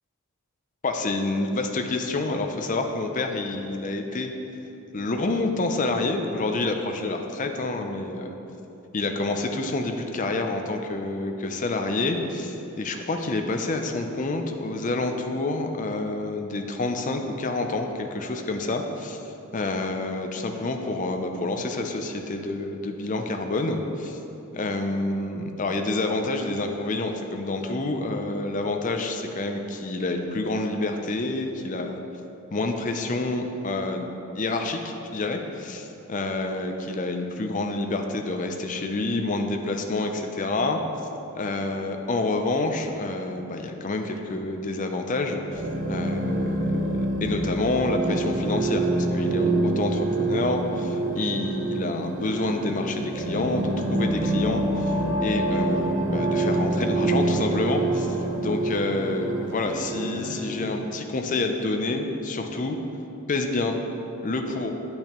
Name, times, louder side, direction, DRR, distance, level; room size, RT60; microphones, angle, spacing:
voice 1, 0.8-4.3 4.9-8.3 8.9-19.2 19.5-24.2 24.5-32.0 32.5-34.1 34.3-40.8 41.3-45.6 45.9-62.8 63.3-63.8 64.2-64.7, left 2 dB, 35° left, 4 dB, 0.5 m, -28 dB
sound 1, 45.5-60.8, right 2 dB, 35° right, 0.9 m, -26 dB
8.5 x 8.5 x 3.0 m, 3.0 s
head